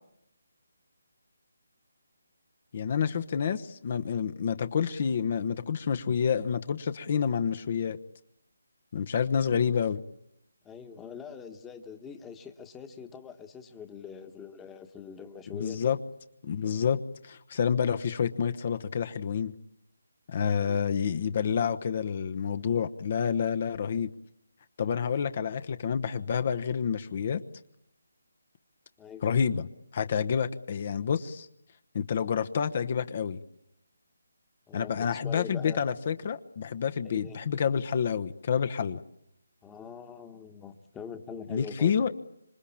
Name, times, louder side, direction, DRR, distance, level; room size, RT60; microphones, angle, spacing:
voice 1, 2.7-8.0 8.9-10.0 15.5-16.0 16.4-19.5 20.3-24.1 24.8-27.4 29.2-29.7 29.9-31.5 31.9-33.4 34.7-39.0 41.5-42.1, left 7 dB, 40° left, 10 dB, 1.1 m, -28 dB
voice 2, 10.6-16.0 29.0-29.2 34.7-35.8 37.0-37.4 39.6-42.0, left 6 dB, 10° left, 7 dB, 1.4 m, -44 dB
26.5 x 23.5 x 8.7 m, 0.79 s
figure-of-eight pair, 160°, 0 cm